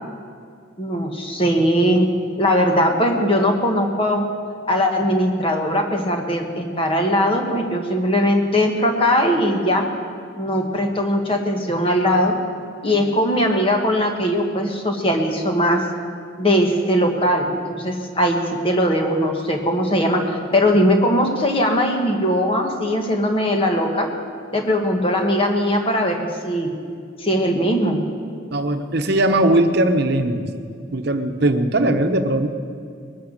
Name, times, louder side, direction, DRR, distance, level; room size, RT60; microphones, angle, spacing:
voice 1, 0.8-2.1 2.4-4.2 4.7-9.9 10.4-12.3 12.8-15.8 16.4-24.1 24.5-26.7 27.2-28.0, equal, 30° left, 2 dB, 1.6 m, -20 dB
voice 2, 28.5-30.4 30.9-32.5, right 1 dB, 55° right, 6 dB, 1.0 m, -19 dB
20.5 x 9.1 x 6.6 m, 2.2 s
head